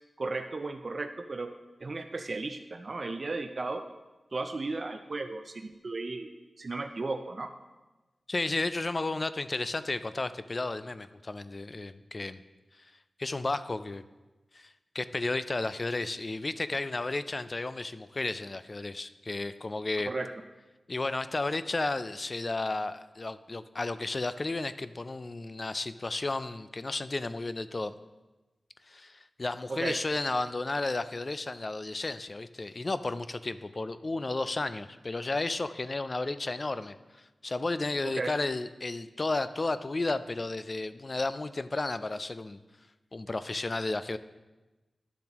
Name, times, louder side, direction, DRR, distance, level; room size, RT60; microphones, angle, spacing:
voice 1, 0.2-1.5 1.8-3.9 4.3-6.3 6.6-7.5 20.1-20.3 29.7-30.0 38.0-38.3, right 3 dB, 45° right, 6 dB, 0.4 m, -35 dB
voice 2, 8.3-12.4 13.2-14.0 14.5-20.1 20.9-27.9 28.9-37.0 37.4-42.6 43.1-44.2, left 2 dB, 35° left, 13 dB, 0.3 m, -33 dB
11.5 x 7.1 x 2.9 m, 1.1 s
wide cardioid pair, 100°, 0 cm